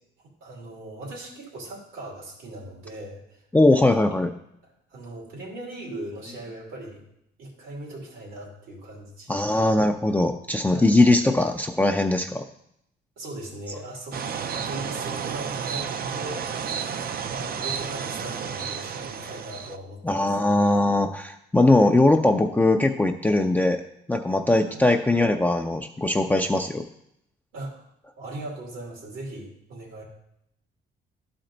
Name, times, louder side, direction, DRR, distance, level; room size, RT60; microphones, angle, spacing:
voice 1, 0.4-3.4 3.9-4.2 4.9-7.0 7.4-9.6 10.7-11.0 13.2-14.2 14.5-16.5 17.3-20.0 24.7-24.8 27.5-27.8 28.2-30.0, right 1 dB, 90° right, -2 dB, 2.7 m, -39 dB
voice 2, 3.5-4.3 9.3-12.4 20.0-23.8 24.1-26.8, left 2 dB, 10° left, 4 dB, 0.4 m, -20 dB
sound 1, 14.1-19.8, right 7 dB, 50° right, 0.5 m, -31 dB
11.5 x 4.4 x 3.9 m, 0.76 s
cardioid pair, 90°, 20 cm